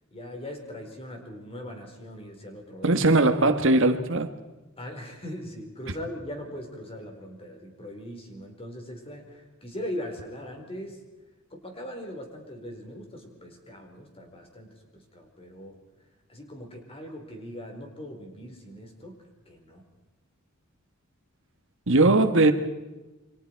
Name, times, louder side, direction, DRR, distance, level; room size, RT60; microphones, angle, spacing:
voice 1, 0.1-3.0 4.8-11.0 11.5-15.8 16.3-19.2 19.5-19.8, equal, 25° left, 3 dB, 4.6 m, -40 dB
voice 2, 2.8-4.3 21.9-22.5, right 2 dB, 65° right, 8 dB, 1.6 m, -20 dB
29.0 x 24.5 x 4.7 m, 1.1 s
head